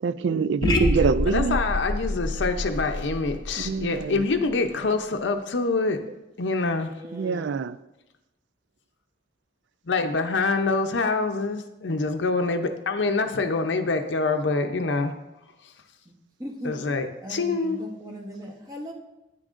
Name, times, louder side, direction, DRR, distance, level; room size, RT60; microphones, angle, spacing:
voice 1, 0.0-1.6 3.6-4.2 7.1-7.8, right 5 dB, 85° right, 15 dB, 0.4 m, -25 dB
sound 1, 0.6-4.7, left 1 dB, 20° left, 0.7 m, -27 dB
voice 2, 1.2-6.0 6.4-6.9 9.9-15.1 16.6-17.8, left 3 dB, 85° left, 6 dB, 0.6 m, -25 dB
voice 3, 7.0-7.5 16.1-16.2 16.4-16.8 17.2-18.9, equal, 20° right, 1 dB, 1.0 m, -38 dB
9.9 x 9.2 x 2.5 m, 0.94 s
head